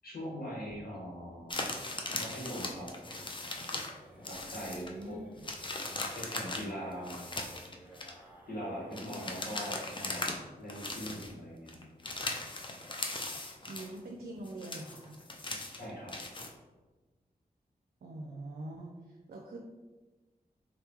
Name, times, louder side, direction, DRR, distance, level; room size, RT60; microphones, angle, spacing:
voice 1, 0.0-1.6 2.2-2.9 4.2-5.2 6.1-7.3 8.5-11.9 15.7-16.1, equal, 70° left, -5 dB, 1.4 m, -41 dB
sound 1, 0.6-9.7 10.0-10.1 10.4-10.5 10.8-11.3, right 1 dB, 5° right, 1.2 m, -57 dB
sound 2, 1.5-4.0 4.2-5.0 5.4-8.1 8.9-10.4 10.7-11.3 11.7-14.0 14.4-16.5, left 2 dB, 30° left, 0.5 m, -39 dB
voice 2, 4.7-5.5 13.7-15.2 18.0-19.6, right 2 dB, 70° right, 0 dB, 0.5 m, -44 dB
3.9 x 2.2 x 3.0 m, 1.2 s
cardioid pair, 40°, 17 cm